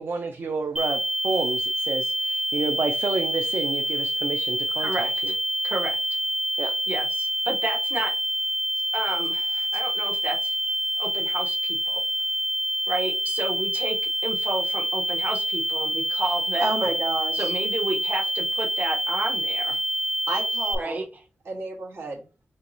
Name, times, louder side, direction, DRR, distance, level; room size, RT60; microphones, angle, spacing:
voice 1, 0.0-5.3 6.6-6.7, right 4 dB, 65° right, 0.4 m, -30 dB
sound 1, 0.8-20.8, right 1 dB, 5° right, 0.4 m, -27 dB
voice 2, 4.8-5.3 5.6-6.0 6.9-8.1 8.9-10.5 11.0-12.0 12.9-14.0 14.2-16.7 17.3-19.8 20.8-21.0, right 2 dB, 45° right, 0.8 m, -31 dB
voice 3, 16.6-17.5 20.3-21.0 21.4-22.2, right 3 dB, 80° right, 1.3 m, -30 dB
4.5 x 3.0 x 2.6 m
wide cardioid pair, 120°, 4 cm